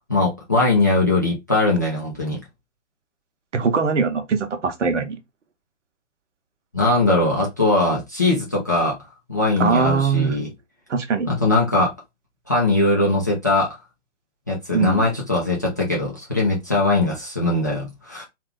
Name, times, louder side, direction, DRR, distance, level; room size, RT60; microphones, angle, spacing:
voice 1, 0.1-2.4 6.7-9.0 9.3-10.5 11.3-11.9 12.5-13.7 14.5-18.2, left 2 dB, 15° left, 0.3 m, -20 dB
voice 2, 3.5-5.2 9.6-10.4 10.9-11.3 14.7-15.1, right 5 dB, 70° right, 0.9 m, -21 dB
3.1 x 2.4 x 3.4 m
figure-of-eight pair, 125°, 38 cm